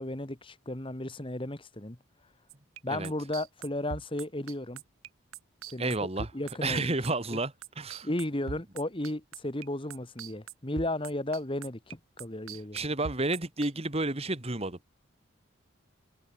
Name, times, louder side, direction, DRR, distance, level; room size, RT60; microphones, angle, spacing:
voice 1, 0.0-2.0 2.8-4.8 5.7-5.9 6.3-6.9 7.3-7.4 8.0-12.8, left 1 dB, 25° left, 1.7 m, -34 dB
sound 1, 2.5-9.7 9.9-13.7, right 6 dB, 80° right, 0.7 m, -42 dB
voice 2, 5.8-6.3 6.6-8.1 12.7-14.8, right 2 dB, 30° right, 2.0 m, -31 dB
open air
head